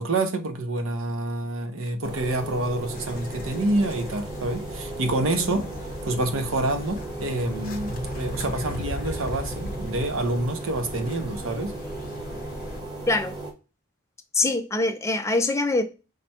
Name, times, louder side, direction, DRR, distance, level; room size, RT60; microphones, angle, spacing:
voice 1, 0.0-5.7 6.0-11.8, right 2 dB, 70° right, 0.7 m, -27 dB
sound 1, 2.0-13.5, right 2 dB, 20° right, 1.1 m, -36 dB
sound 2, 2.9-12.8, left 1 dB, 40° left, 0.7 m, -38 dB
voice 2, 14.3-15.8, left 2 dB, 15° left, 0.4 m, -23 dB
5.0 x 2.2 x 4.2 m
head